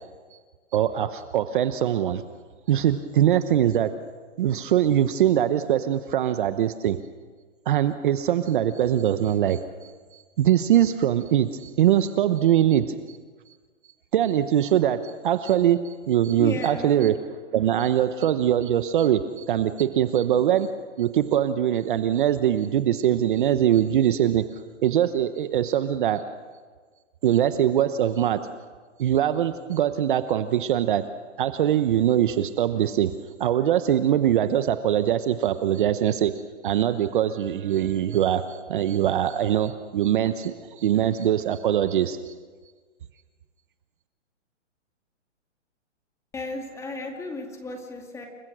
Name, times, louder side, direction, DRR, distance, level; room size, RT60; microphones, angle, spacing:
voice 1, 0.7-2.2 2.7-3.9 4.4-7.0 7.7-13.2 14.1-17.1 17.5-20.7 21.0-24.4 24.8-26.2 27.2-28.4 29.0-31.0 31.4-33.1 33.4-36.3 36.6-42.3, right 11 dB, 40° right, 11 dB, 1.0 m, -22 dB
voice 2, 16.4-16.9 46.3-48.3, left 2 dB, 10° left, 2 dB, 2.3 m, -33 dB
29.5 x 22.0 x 6.2 m, 1.5 s
hypercardioid pair, 160°, 37 cm